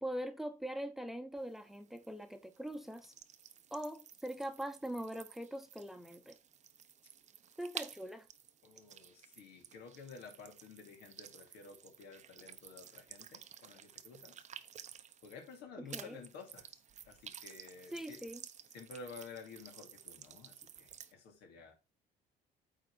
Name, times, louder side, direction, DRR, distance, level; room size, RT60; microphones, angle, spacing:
voice 1, 0.0-3.1 3.7-6.4 7.6-8.3 15.8-16.2 17.9-18.4, right 1 dB, ahead, 0.9 m, -42 dB
sound 1, 1.4-15.6 15.9-21.1, right 9 dB, 45° right, 0.7 m, -53 dB
voice 2, 8.6-14.3 15.2-16.8 17.1-18.2 18.7-21.7, left 4 dB, 85° left, 2.5 m, -52 dB
8.9 x 4.0 x 4.7 m
cardioid pair, 110°, 17 cm